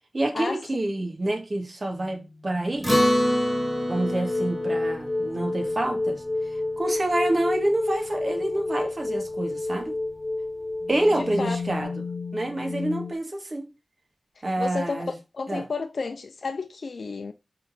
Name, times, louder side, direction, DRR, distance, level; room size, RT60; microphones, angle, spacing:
voice 1, 0.1-2.9 3.9-6.2 6.8-10.0 10.9-11.9 12.3-13.7 14.4-15.1 15.5-15.6, right 1 dB, 45° right, 1.7 m, -27 dB
sound 1, 1.9-13.1, left 2 dB, 35° left, 0.8 m, -31 dB
Acoustic guitar, 2.8-7.5, equal, 5° left, 4.3 m, -27 dB
voice 2, 11.1-11.6 14.6-17.3, left 4 dB, 75° left, 0.5 m, -32 dB
5.6 x 3.8 x 5.9 m
wide cardioid pair, 65°, 0 cm